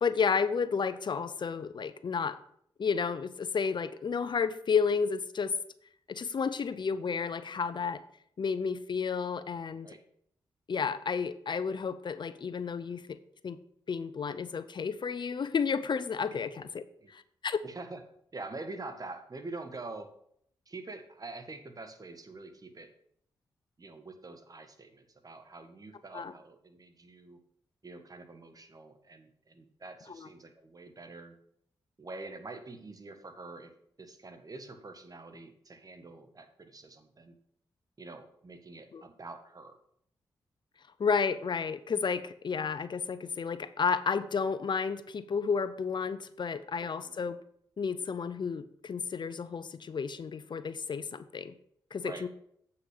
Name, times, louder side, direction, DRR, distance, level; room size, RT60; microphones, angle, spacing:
voice 1, 0.0-2.4 2.8-5.5 6.1-8.0 8.4-9.9 10.7-13.2 13.4-13.6 13.9-16.8 17.1-17.6 26.1-26.3 30.1-30.3 38.9-39.0 41.0-47.4 47.8-51.5 51.9-52.3, left 5 dB, 55° left, 14 dB, 0.5 m, -31 dB
voice 2, 17.6-18.0 18.3-20.1 20.7-22.9 23.8-27.4 27.8-31.4 32.0-33.7 34.0-37.4 38.0-39.8 46.8-47.1 52.0-52.3, right 3 dB, 40° right, 8 dB, 1.4 m, -45 dB
8.3 x 5.8 x 5.0 m, 0.68 s
supercardioid pair, 45°, 10 cm